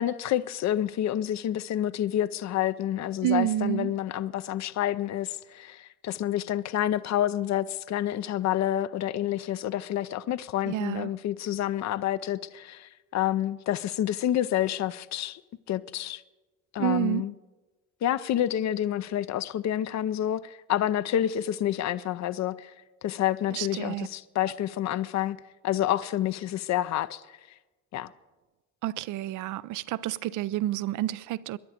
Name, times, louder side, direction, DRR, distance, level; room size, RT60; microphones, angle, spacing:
voice 1, 0.0-15.4 15.7-16.2 16.7-17.3 18.0-22.7 23.0-27.2 27.9-28.1, left 12 dB, 65° left, 0.6 m, -28 dB
voice 2, 3.2-3.9 10.7-11.1 16.8-17.3 23.5-24.1 28.8-31.6, right 13 dB, 85° right, 0.5 m, -29 dB
23.5 x 10.5 x 5.1 m
cardioid pair, 90°, 30 cm